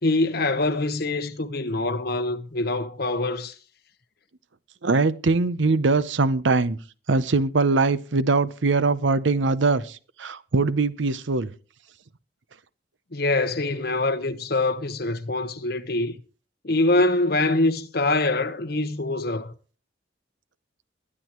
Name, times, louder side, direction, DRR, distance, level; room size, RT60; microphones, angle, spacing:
voice 1, 0.0-3.5 13.1-16.1 16.6-19.5, left 2 dB, 55° left, 1.1 m, -24 dB
voice 2, 4.8-6.8 7.1-11.5, right 3 dB, 70° right, 0.7 m, -22 dB
21.5 x 9.9 x 3.0 m
head